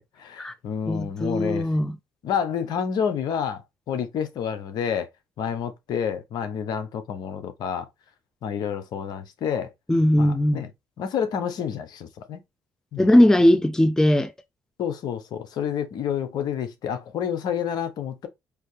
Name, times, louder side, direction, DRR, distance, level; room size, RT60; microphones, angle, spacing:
voice 1, 0.2-1.7 2.2-5.1 5.4-7.9 8.4-9.7 10.2-10.7 11.0-12.4 12.9-13.2 14.8-18.3, left 8 dB, 70° left, 0.8 m, -29 dB
voice 2, 0.9-1.9 9.9-10.6 13.0-14.3, left 1 dB, 10° left, 0.6 m, -19 dB
4.9 x 2.7 x 3.2 m
supercardioid pair, 60°, 7 cm